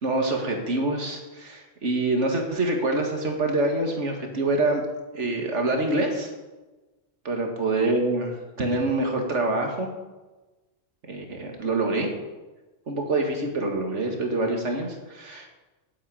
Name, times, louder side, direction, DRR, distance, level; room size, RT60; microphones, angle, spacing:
voice 1, 0.0-4.8 5.1-6.3 7.2-9.9 11.1-12.1 12.9-15.6, right 2 dB, 80° right, 2 dB, 2.2 m, -26 dB
9.3 x 8.0 x 9.0 m, 1.2 s
omnidirectional pair, 1.2 m